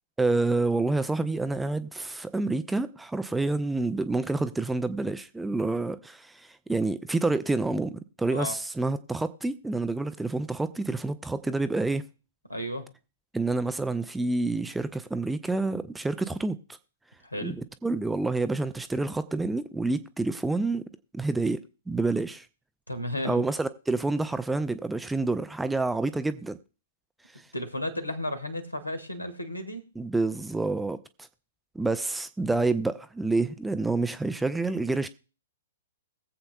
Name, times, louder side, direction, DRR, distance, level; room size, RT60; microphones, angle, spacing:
voice 1, 0.2-12.1 13.3-16.6 17.4-20.9 21.1-21.6 21.9-22.5 23.2-26.6 30.0-31.0 31.7-35.1, right 3 dB, 5° right, 0.4 m, -28 dB
voice 2, 12.5-12.9 17.2-17.6 22.9-23.4 27.5-29.9, left 1 dB, 90° left, 1.6 m, -33 dB
21.5 x 7.8 x 2.2 m
figure-of-eight pair, 115°, 0 cm